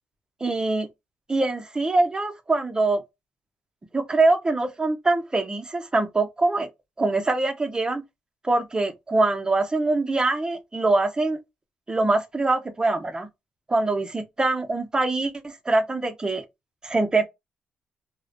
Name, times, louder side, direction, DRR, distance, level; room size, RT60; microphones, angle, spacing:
voice 1, 0.4-0.9 1.3-3.0 3.9-6.7 7.0-8.0 8.4-11.4 11.9-13.3 13.7-16.4 16.8-17.2, right 2 dB, 25° right, 0.6 m, -23 dB
2.4 x 2.1 x 2.4 m
supercardioid pair, 60°, 3 cm